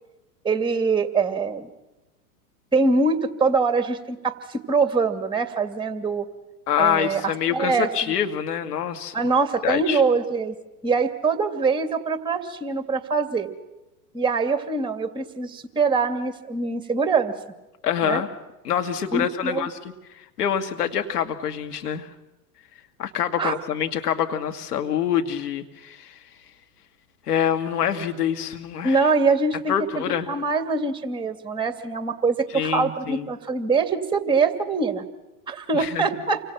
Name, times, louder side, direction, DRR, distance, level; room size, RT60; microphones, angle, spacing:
voice 1, 0.4-1.7 2.7-6.3 6.8-8.1 9.1-10.6 10.8-13.5 14.1-17.3 18.0-18.2 19.1-19.7 23.4-23.5 28.8-35.0 35.5-36.4, right 4 dB, 10° right, 9 dB, 2.6 m, -23 dB
voice 2, 6.7-9.1 9.6-10.0 17.8-18.3 18.6-19.8 20.1-22.1 23.0-26.2 27.3-29.0 29.7-30.3 32.5-33.3 35.7-36.0, left 9 dB, 75° left, 6 dB, 2.5 m, -26 dB
29.5 x 25.0 x 5.9 m, 1.0 s
hypercardioid pair, 100°, 46 cm